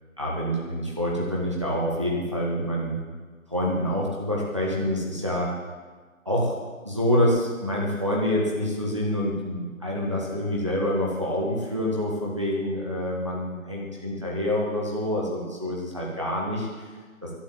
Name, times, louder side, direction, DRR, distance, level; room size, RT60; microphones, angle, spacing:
voice 1, 0.2-3.0 3.5-5.5 6.2-6.6 6.8-16.9, left 1 dB, 20° right, -4 dB, 1.4 m, -27 dB
11.5 x 9.8 x 7.5 m, 1.4 s
figure-of-eight pair, 175°, 41 cm